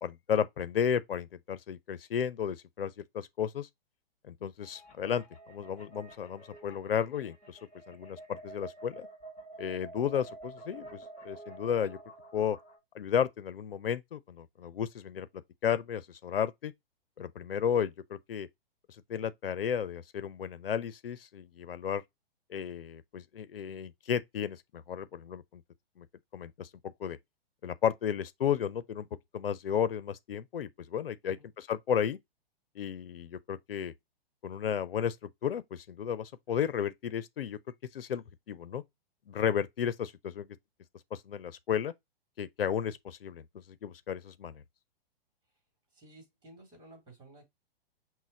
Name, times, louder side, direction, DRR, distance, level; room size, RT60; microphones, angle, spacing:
voice 1, 0.0-3.7 4.3-7.6 7.9-9.1 9.6-12.0 12.3-12.6 12.9-15.3 15.6-16.7 17.2-18.5 19.1-22.0 22.5-25.6 26.0-26.1 26.3-27.2 27.6-29.1 29.3-32.2 32.8-33.9 34.4-35.2 35.4-37.6 37.9-38.8 39.3-40.5 41.1-41.9 42.4-43.4 43.8-44.6, left 8 dB, 70° left, 0.6 m, -33 dB
sound 1, 4.6-12.8, right 2 dB, 20° left, 1.8 m, -50 dB
voice 2, 45.9-47.5, right 2 dB, 15° right, 2.6 m, -54 dB
6.1 x 2.2 x 3.9 m
figure-of-eight pair, 115°, 30 cm